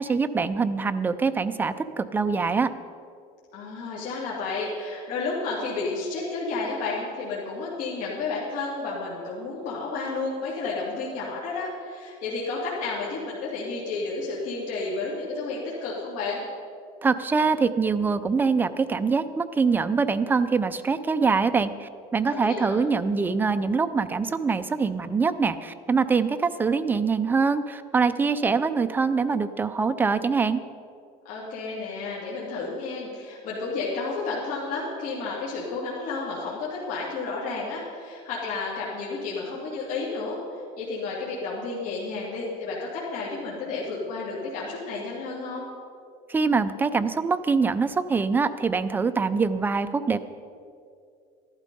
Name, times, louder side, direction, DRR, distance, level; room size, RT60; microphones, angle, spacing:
voice 1, 0.0-2.7 17.0-30.6 46.3-50.2, right 4 dB, 10° right, 10 dB, 0.5 m, -24 dB
voice 2, 3.5-16.4 22.3-22.8 31.2-45.7, left 3 dB, 50° left, -6 dB, 2.7 m, -31 dB
14.0 x 12.0 x 5.4 m, 2.4 s
cardioid pair, 150°, 17 cm